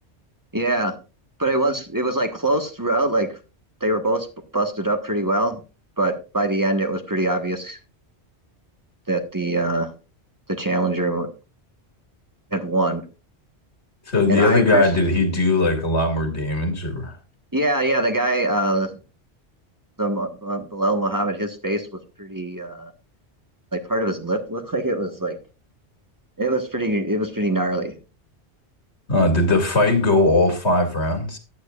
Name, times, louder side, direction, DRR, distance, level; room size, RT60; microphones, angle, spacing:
voice 1, 0.5-0.9 1.4-3.3 3.8-4.3 4.5-5.6 6.0-7.8 9.1-9.9 10.5-11.3 12.5-13.0 14.3-14.9 17.5-19.0 20.0-21.9 22.2-22.9 23.7-25.4 26.4-27.9, right 1 dB, 20° right, 1.3 m, -23 dB
voice 2, 14.1-17.1 29.1-31.4, left 2 dB, 80° left, 2.7 m, -19 dB
15.0 x 9.1 x 2.4 m
omnidirectional pair, 1.1 m